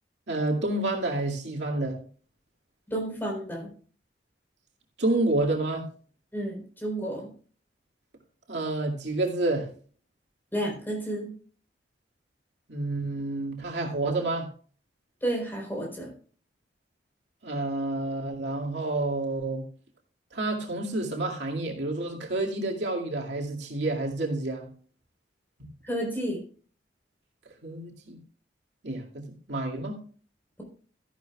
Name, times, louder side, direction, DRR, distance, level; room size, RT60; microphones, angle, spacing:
voice 1, 0.3-2.0 5.0-5.9 8.5-9.7 12.7-14.5 17.4-19.7 20.3-24.7 27.6-28.2 28.8-30.0, right 2 dB, 80° right, -1 dB, 2.2 m, -29 dB
voice 2, 2.9-3.7 6.3-7.3 10.5-11.3 15.2-16.1 25.8-26.4, right 1 dB, 10° left, -1 dB, 4.1 m, -31 dB
13.5 x 11.5 x 2.4 m, 0.43 s
head